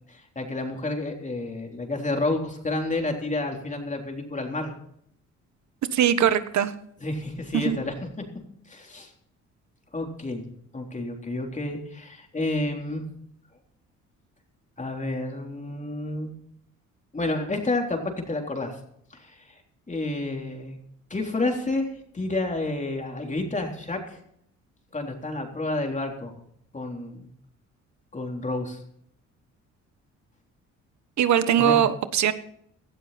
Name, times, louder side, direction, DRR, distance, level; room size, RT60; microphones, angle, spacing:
voice 1, 0.1-4.7 7.0-7.9 8.7-9.1 9.9-13.0 14.8-16.3 17.1-18.8 19.1-19.5 19.9-20.8 21.1-21.9 22.1-24.2 24.9-26.3 26.7-27.3 28.1-28.8 31.6-31.8, left 2 dB, 25° left, 2 dB, 3.7 m, -30 dB
voice 2, 5.9-6.7 7.5-7.8 31.2-32.3, right 9 dB, 65° right, 13 dB, 1.3 m, -21 dB
17.5 x 12.5 x 4.3 m, 0.70 s
cardioid pair, 90°, 30 cm